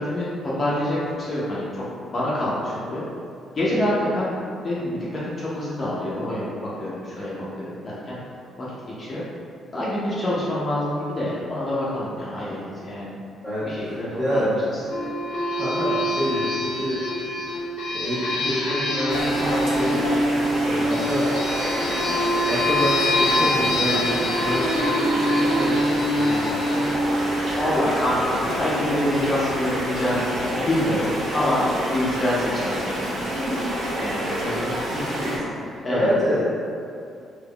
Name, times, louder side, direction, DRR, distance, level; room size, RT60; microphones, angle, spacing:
voice 1, 0.0-3.0 3.5-4.3 4.6-6.5 6.8-8.2 8.6-8.7 9.0-9.2 9.7-13.1 13.6-14.6 27.5-30.2 30.6-31.7 31.9-33.1 34.0-34.2 35.8-36.1, left 1 dB, 35° left, -8 dB, 0.6 m, -26 dB
voice 2, 13.4-14.5 15.6-17.0 17.9-20.0 20.5-21.5 22.5-26.8 34.4-36.5, equal, 5° right, -15 dB, 1.2 m, -28 dB
sound 1, 14.9-28.1, left 1 dB, 75° left, 0.7 m, -24 dB
sound 2, 19.1-35.4, equal, 60° right, 0.8 m, -28 dB
3.4 x 2.9 x 2.3 m, 2.4 s
cardioid pair, 120°, 0 cm